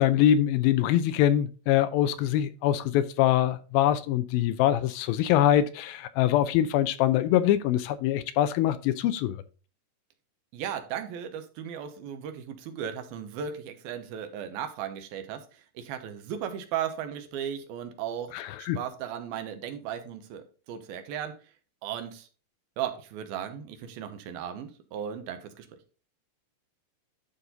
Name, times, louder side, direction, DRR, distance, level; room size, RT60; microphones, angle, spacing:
voice 1, 0.0-9.4 18.3-18.8, left 11 dB, 80° left, 2.4 m, -24 dB
voice 2, 10.5-21.4 21.8-22.3 22.8-25.8, right 9 dB, 80° right, 2.8 m, -36 dB
12.0 x 4.2 x 3.8 m
omnidirectional pair, 4.4 m